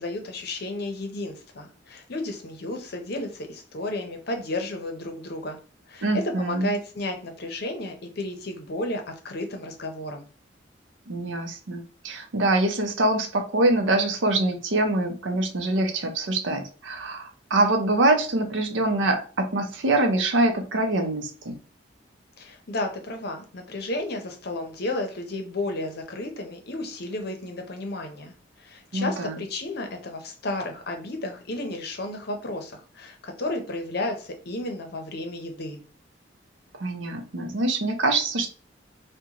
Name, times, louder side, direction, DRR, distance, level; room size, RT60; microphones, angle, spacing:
voice 1, 0.0-5.6 5.9-10.2 22.4-35.8, left 2 dB, 55° left, 5 dB, 0.6 m, -32 dB
voice 2, 6.0-6.7 11.1-21.6 28.9-29.4 36.8-38.5, right 2 dB, 75° right, 5 dB, 0.6 m, -24 dB
3.8 x 2.2 x 2.8 m, 0.39 s
head